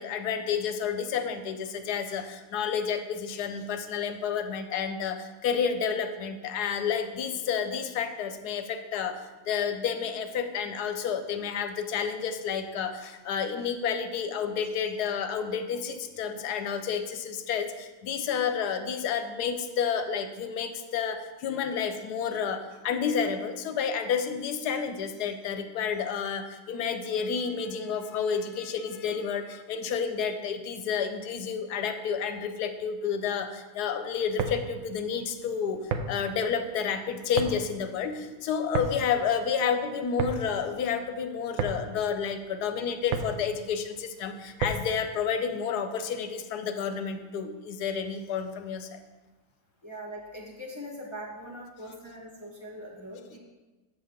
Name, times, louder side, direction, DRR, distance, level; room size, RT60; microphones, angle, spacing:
voice 1, 0.0-49.0, left 7 dB, 70° left, 8 dB, 1.0 m, -30 dB
sound 1, 34.2-45.1, right 5 dB, 80° right, 0.7 m, -35 dB
voice 2, 49.8-53.4, equal, 35° left, -2 dB, 0.4 m, -41 dB
7.8 x 4.1 x 6.5 m, 1.2 s
omnidirectional pair, 2.1 m